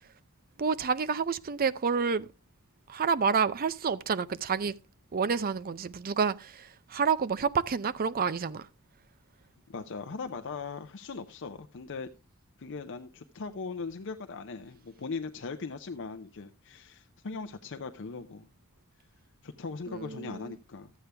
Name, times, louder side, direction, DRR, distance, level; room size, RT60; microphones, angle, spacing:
voice 1, 0.6-2.3 2.9-4.7 5.1-8.7 19.9-20.6, right 5 dB, 40° right, 0.5 m, -29 dB
voice 2, 9.7-12.1 12.6-18.5 19.4-20.9, left 4 dB, 55° left, 0.6 m, -39 dB
13.0 x 8.2 x 3.4 m
head